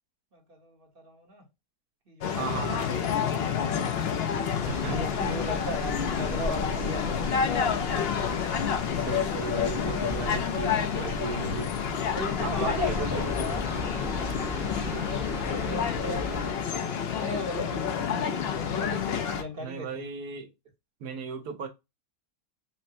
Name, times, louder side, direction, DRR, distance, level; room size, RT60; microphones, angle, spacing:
voice 1, 0.3-1.5 2.1-3.9 4.9-7.7 12.1-13.5 14.3-16.7 17.0-20.0, equal, 40° right, 1.1 m, -39 dB
sound 1, 2.2-19.4, left 7 dB, 60° left, 0.6 m, -29 dB
voice 2, 2.4-2.8 4.6-5.0 9.0-11.8 12.4-13.6 19.6-20.5 21.0-21.7, right 5 dB, 75° right, 1.3 m, -35 dB
sound 2, 4.6-16.5, left 1 dB, 5° right, 0.3 m, -38 dB
5.6 x 2.1 x 2.6 m
omnidirectional pair, 1.6 m